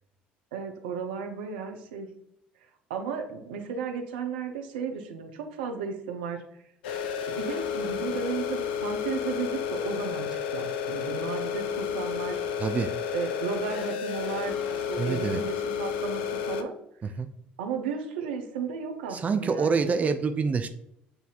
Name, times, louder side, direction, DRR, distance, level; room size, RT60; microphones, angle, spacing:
voice 1, 0.5-2.1 2.9-6.4 7.4-12.5 13.1-16.8 17.0-17.1 17.6-19.7, right 6 dB, 75° right, 4 dB, 0.6 m, -34 dB
sound 1, 6.8-16.6, left 7 dB, 75° left, 0.4 m, -31 dB
voice 2, 12.6-12.9 15.0-15.4 17.2-17.3 19.1-20.7, right 5 dB, 30° right, 8 dB, 0.4 m, -26 dB
7.8 x 2.7 x 2.4 m, 0.76 s
hypercardioid pair, 60°, 5 cm